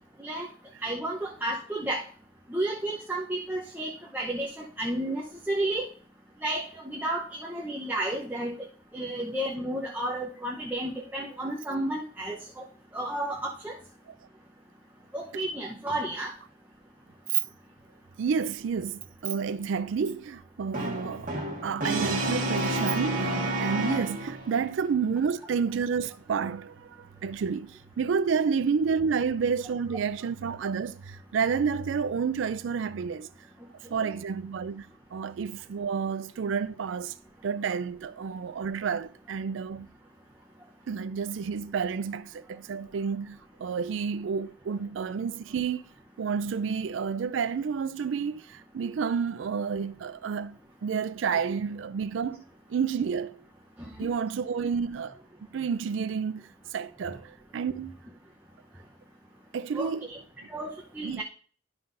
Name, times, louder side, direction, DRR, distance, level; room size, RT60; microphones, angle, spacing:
voice 1, 0.8-2.0 2.5-5.9 6.4-8.5 8.9-12.6 12.9-13.8 15.1-16.3 53.8-54.1 59.7-60.2 60.5-61.2, right 1 dB, 10° right, 0.8 m, -32 dB
voice 2, 18.2-21.3 21.6-33.3 33.9-37.1 37.4-39.9 40.9-45.8 46.2-52.4 52.7-53.4 54.0-55.2 55.5-58.0 59.5-60.1 61.0-61.2, right 6 dB, 75° right, 0.4 m, -30 dB
Brass instrument, 20.7-24.5, right 1 dB, 45° right, 1.5 m, -30 dB
11.5 x 5.6 x 2.6 m
head